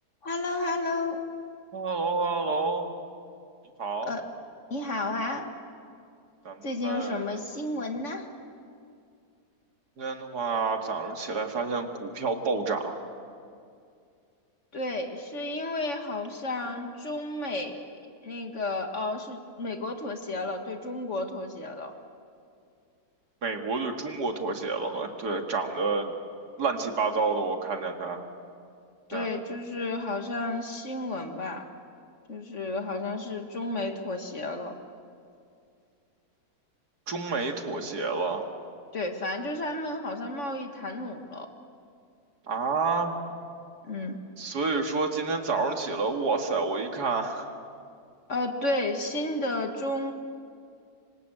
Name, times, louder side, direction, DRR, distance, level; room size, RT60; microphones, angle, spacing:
voice 1, 0.2-1.2 4.0-4.2 4.7-5.5 6.6-8.3 14.7-17.8 18.2-21.9 29.1-31.7 32.3-34.7 38.9-41.5 43.8-44.2 48.3-50.1, left 2 dB, 50° left, 5 dB, 2.1 m, -32 dB
voice 2, 1.7-2.9 3.8-4.1 6.4-7.4 10.0-13.0 23.4-26.1 26.6-28.2 29.1-29.3 37.1-38.4 42.5-43.1 44.4-47.5, right 4 dB, 80° right, 4 dB, 2.6 m, -29 dB
27.0 x 25.0 x 7.9 m, 2.4 s
omnidirectional pair, 1.7 m